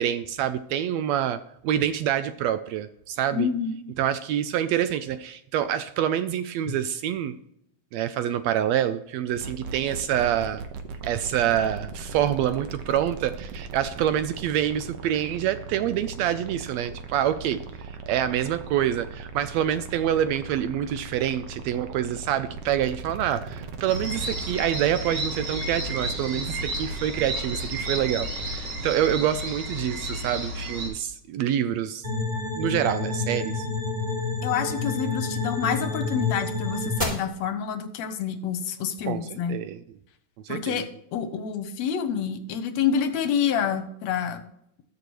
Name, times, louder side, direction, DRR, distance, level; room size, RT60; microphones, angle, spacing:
voice 1, 0.0-3.5 4.0-7.3 7.9-10.6 11.0-32.0 32.5-33.7 39.1-39.2 39.5-39.8 40.4-40.8, right 10 dB, 80° right, 12 dB, 1.6 m, -26 dB
voice 2, 3.3-3.7 34.4-39.6 40.5-44.4, left 7 dB, 70° left, 10 dB, 1.9 m, -28 dB
sound 1, 9.3-28.7, right 4 dB, 65° right, 1.8 m, -39 dB
sound 2, 23.9-30.9, right 1 dB, 45° right, 2.8 m, -32 dB
sound 3, 32.0-37.0, left 3 dB, 15° right, 2.9 m, -29 dB
20.0 x 6.7 x 3.1 m, 0.77 s
omnidirectional pair, 3.4 m